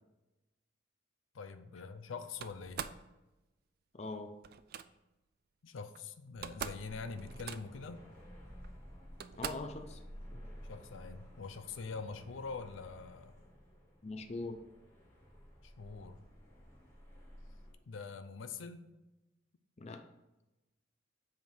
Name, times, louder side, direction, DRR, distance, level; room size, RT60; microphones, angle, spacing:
voice 1, 1.3-2.8 5.6-8.1 10.6-13.4 15.6-16.2 17.9-18.9, left 4 dB, 90° left, 9 dB, 0.5 m, -44 dB
Slam, 2.4-3.1 4.4-4.9 5.9-6.0 6.3-6.9 7.2-7.9 8.6-8.7 9.2-9.8, right 8 dB, 50° right, 0.3 m, -43 dB
voice 2, 3.9-4.3 9.4-10.0 10.3-10.4 14.0-14.6 19.8-20.0, left 2 dB, 35° left, 7 dB, 0.5 m, -42 dB
sound 1, 6.8-17.7, equal, 15° left, 1.9 m, -53 dB
7.6 x 3.6 x 4.6 m, 1.0 s
head